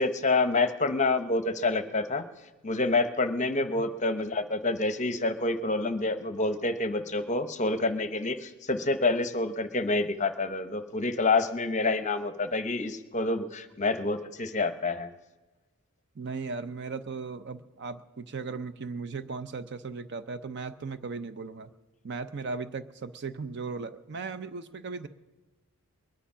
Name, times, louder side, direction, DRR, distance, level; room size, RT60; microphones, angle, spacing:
voice 1, 0.0-2.3 2.6-15.1, left 3 dB, 35° left, 10 dB, 0.8 m, -28 dB
voice 2, 16.2-21.7 22.0-25.1, right 4 dB, 50° right, 12 dB, 0.6 m, -37 dB
21.5 x 9.9 x 5.6 m, 1.2 s
head